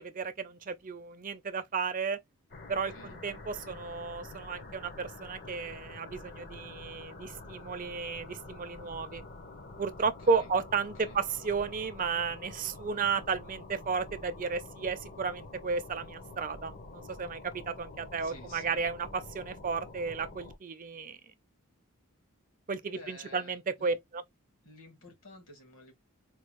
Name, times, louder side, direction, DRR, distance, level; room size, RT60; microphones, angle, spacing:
voice 1, 0.0-2.2 2.7-9.2 9.8-21.2 22.7-24.2, right 5 dB, 40° right, 0.5 m, -33 dB
sound 1, 2.5-20.6, left 2 dB, 50° left, 0.9 m, -47 dB
voice 2, 10.0-10.5 11.0-11.2 18.2-18.8 22.9-24.0 24.6-25.9, left 2 dB, 70° left, 1.9 m, -52 dB
4.5 x 2.3 x 3.0 m
head